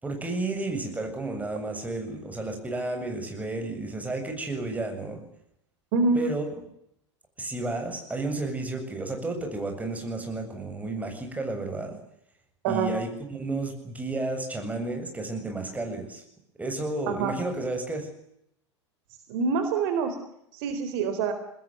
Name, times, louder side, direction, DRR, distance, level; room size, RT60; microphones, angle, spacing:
voice 1, 0.0-5.2 6.1-6.4 7.4-12.0 12.7-16.2 16.6-18.1, right 2 dB, 10° right, 4 dB, 7.7 m, -32 dB
voice 2, 17.1-17.4 19.3-20.2 20.5-21.3, right 4 dB, 50° right, 8 dB, 4.1 m, -25 dB
23.5 x 20.5 x 9.2 m, 0.76 s
figure-of-eight pair, 90°, 15 cm